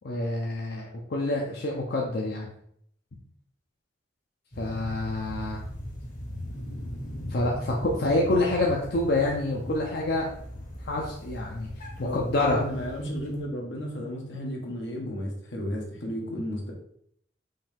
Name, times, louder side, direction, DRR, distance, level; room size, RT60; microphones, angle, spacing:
voice 1, 0.0-2.5 4.6-5.6 7.3-10.3 10.8-11.7 12.0-12.6, left 2 dB, 60° left, -2 dB, 0.6 m, -27 dB
sound 1, 4.5-13.4, left 1 dB, 45° left, 1.0 m, -39 dB
voice 2, 12.0-16.7, equal, 85° left, 0 dB, 1.3 m, -33 dB
5.5 x 2.7 x 3.5 m, 0.67 s
head